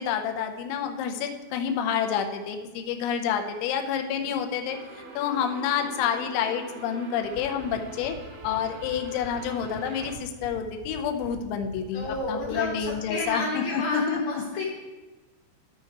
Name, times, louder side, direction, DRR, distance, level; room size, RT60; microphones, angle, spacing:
voice 1, 0.0-4.8 5.2-8.1 8.4-14.2, left 8 dB, 85° left, 5 dB, 3.1 m, -28 dB
sound 1, 4.7-10.1, right 3 dB, 70° right, 2.4 m, -44 dB
sound 2, 7.2-13.2, right 6 dB, 85° right, 3.0 m, -43 dB
voice 2, 11.9-14.7, left 2 dB, 65° left, -2 dB, 2.4 m, -31 dB
13.5 x 4.6 x 4.6 m, 1.2 s
omnidirectional pair, 5.3 m